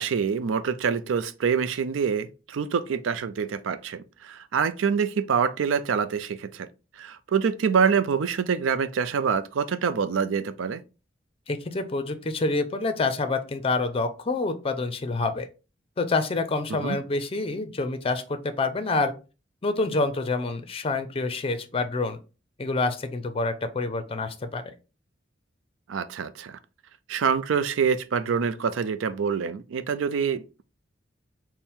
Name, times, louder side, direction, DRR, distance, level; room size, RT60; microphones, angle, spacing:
voice 1, 0.0-6.7 7.0-10.8 16.7-17.0 25.9-26.6 27.1-30.6, right 6 dB, 85° right, 0.4 m, -26 dB
voice 2, 11.5-15.5 16.0-19.1 19.6-22.2 22.6-24.7, left 3 dB, 30° left, 0.5 m, -27 dB
4.3 x 2.1 x 3.5 m
head